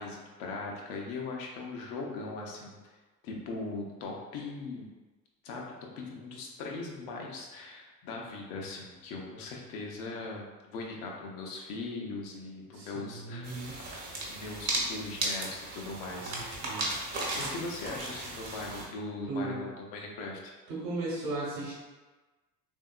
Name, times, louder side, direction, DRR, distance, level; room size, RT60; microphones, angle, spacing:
voice 1, 0.0-2.9 3.2-4.9 5.4-13.5 14.3-16.6 17.3-20.5, left 3 dB, 45° left, -1 dB, 0.7 m, -40 dB
voice 2, 12.7-13.8 16.2-16.9 19.3-19.6 20.7-21.7, right 2 dB, 65° right, -5 dB, 1.1 m, -36 dB
sound 1, 13.4-18.9, right 2 dB, 30° right, 0.8 m, -35 dB
3.4 x 2.7 x 2.3 m, 1.2 s
figure-of-eight pair, 65°, 49 cm